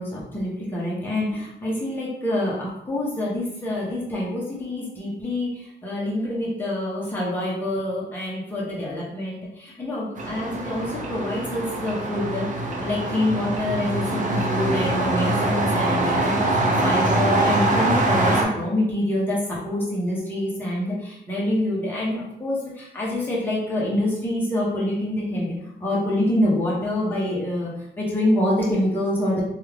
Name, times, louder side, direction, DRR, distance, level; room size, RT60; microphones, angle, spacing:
voice 1, 0.0-25.5 25.8-29.4, left 1 dB, 10° left, -6 dB, 0.9 m, -26 dB
sound 1, 10.2-18.4, right 2 dB, 40° right, 0.5 m, -23 dB
3.1 x 2.4 x 3.3 m, 0.80 s
wide cardioid pair, 150°, 19 cm